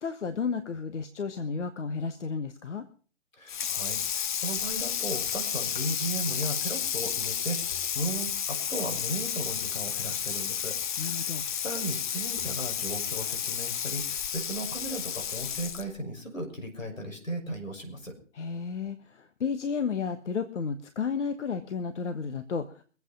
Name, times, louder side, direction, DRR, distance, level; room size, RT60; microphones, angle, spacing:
voice 1, 0.0-2.9 11.0-11.4 18.3-22.8, left 5 dB, 65° left, 9 dB, 1.4 m, -32 dB
voice 2, 3.4-10.8 11.0-18.1, right 1 dB, 90° left, 5 dB, 6.1 m, -36 dB
Water tap faucet / Sink (filling or washing), 3.5-16.0, left 9 dB, 40° left, 1.0 m, -32 dB
23.0 x 8.4 x 5.6 m, 0.40 s
figure-of-eight pair, 140°, 38 cm